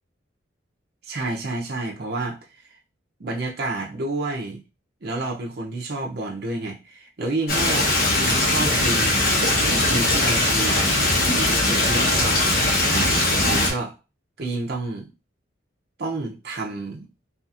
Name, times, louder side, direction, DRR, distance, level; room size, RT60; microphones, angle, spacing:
voice 1, 1.0-2.4 3.2-4.6 5.0-9.2 9.7-10.8 11.3-12.5 12.9-13.1 13.4-13.9 14.4-15.1 16.0-17.1, right 2 dB, 55° right, 0.6 m, -29 dB
Stream, 7.5-13.7, left 1 dB, 50° left, 0.9 m, -20 dB
2.7 x 2.4 x 2.4 m
head